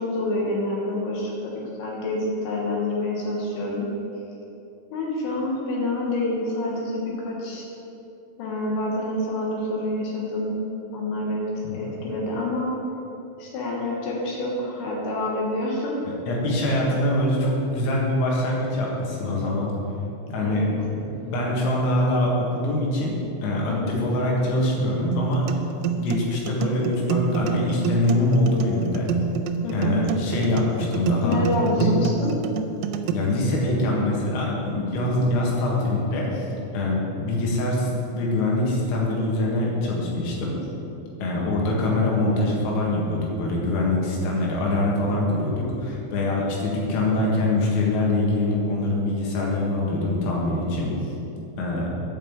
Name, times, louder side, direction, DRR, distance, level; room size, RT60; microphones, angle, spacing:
voice 1, 0.0-3.9 4.9-7.7 8.4-10.6 10.9-11.5 11.7-12.7 13.4-16.0 20.4-20.7 23.7-24.1 29.6-30.0 31.2-32.3, left 2 dB, 70° left, -3 dB, 2.7 m, -27 dB
voice 2, 16.3-19.7 20.3-20.7 21.3-23.2 23.4-25.6 25.9-29.1 29.7-31.4 31.8-31.9 33.1-36.5 36.7-40.6 41.2-50.9 51.6-51.9, left 1 dB, 90° left, -3 dB, 4.4 m, -24 dB
sound 1, 25.1-33.1, right 7 dB, 90° right, 3.2 m, -27 dB
9.0 x 5.3 x 7.9 m, 3.0 s
omnidirectional pair, 5.9 m